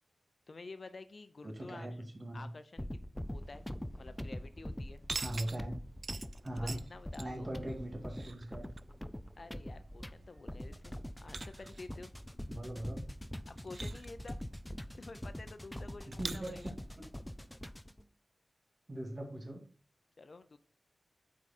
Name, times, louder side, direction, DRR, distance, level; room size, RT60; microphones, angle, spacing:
voice 1, 0.5-2.0 2.3-2.9 3.3-3.7 4.0-5.0 6.5-7.5 9.4-10.9 11.2-12.1 13.5-14.4 15.0-16.7 20.2-20.6, left 3 dB, 55° left, 11 dB, 0.7 m, -50 dB
voice 2, 1.4-2.5 5.1-5.8 6.4-6.8 7.2-8.7 12.5-13.0 16.2-16.7 18.9-19.6, right 1 dB, 35° right, 2 dB, 2.2 m, -40 dB
sound 1, 2.8-18.0, equal, 10° left, 0.5 m, -44 dB
sound 2, 3.2-17.6, right 3 dB, 55° right, 0.4 m, -49 dB
8.4 x 4.9 x 4.2 m, 0.40 s
wide cardioid pair, 80°, 0 cm